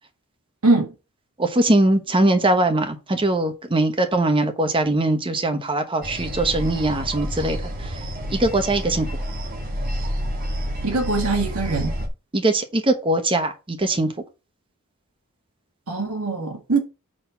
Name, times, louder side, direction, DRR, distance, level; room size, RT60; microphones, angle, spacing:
voice 1, 0.6-0.9 10.8-11.9 15.9-16.8, right 3 dB, 70° right, 1.5 m, -22 dB
voice 2, 1.4-7.6 8.3-9.1 12.3-14.1, right 2 dB, 25° right, 1.0 m, -21 dB
sound 1, 6.0-12.1, equal, 45° right, 1.4 m, -29 dB
6.2 x 4.2 x 5.7 m
head